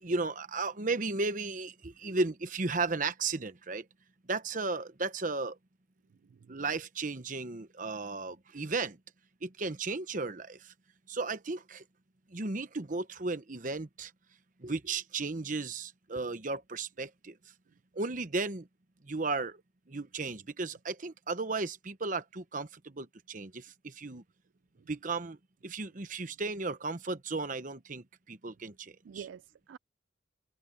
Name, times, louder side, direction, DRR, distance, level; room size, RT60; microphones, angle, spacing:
voice 1, 0.0-3.8 4.3-5.6 6.5-9.0 9.4-10.6 11.1-11.8 12.3-14.1 14.6-17.3 18.0-18.7 19.1-19.6 19.9-24.2 24.9-25.4 25.6-29.3, right 3 dB, 45° right, 1.0 m, -35 dB
voice 2, 6.3-6.6 24.8-24.9 29.0-29.8, right 7 dB, 75° right, 0.3 m, -47 dB
head